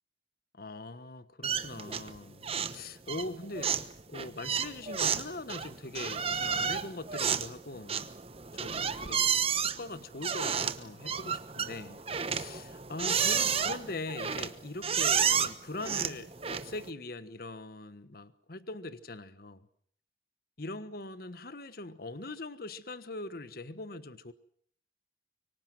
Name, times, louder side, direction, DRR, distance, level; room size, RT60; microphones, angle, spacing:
voice 1, 0.5-2.5 2.7-3.7 4.1-8.1 8.5-9.2 9.8-12.0 12.3-19.6 20.6-24.3, left 2 dB, 55° left, 13 dB, 1.3 m, -41 dB
sound 1, 1.4-2.2 2.4-2.8 3.1-16.9, right 7 dB, 30° right, 1.1 m, -31 dB
25.0 x 24.0 x 7.7 m, 0.63 s
head